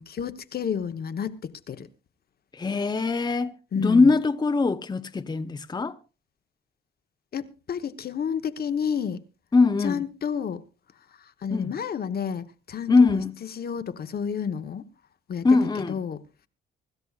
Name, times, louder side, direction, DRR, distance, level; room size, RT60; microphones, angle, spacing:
voice 1, 0.0-1.9 3.7-4.1 7.3-9.2 9.8-10.6 11.1-14.9 15.3-16.2, left 7 dB, 50° left, 1.1 m, -31 dB
voice 2, 2.5-6.0 9.5-10.0 11.5-11.7 12.9-13.3 15.4-15.9, left 3 dB, 20° left, 0.8 m, -22 dB
25.0 x 13.0 x 2.4 m
cardioid pair, 90°, 20 cm